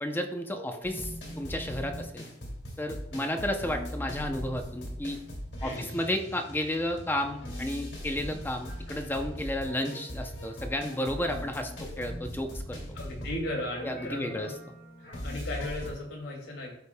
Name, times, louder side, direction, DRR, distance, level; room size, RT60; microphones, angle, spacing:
voice 1, 0.0-1.1 1.4-2.3 2.8-5.2 5.6-12.8 13.8-14.5, left 1 dB, 10° left, 4 dB, 0.6 m, -32 dB
sound 1, 0.8-15.9, equal, 70° left, 2.2 m, -40 dB
voice 2, 5.6-6.0 11.8-12.1 12.9-14.6 15.0-16.7, left 1 dB, 90° left, -1 dB, 2.4 m, -37 dB
12.5 x 5.1 x 2.2 m, 0.80 s
head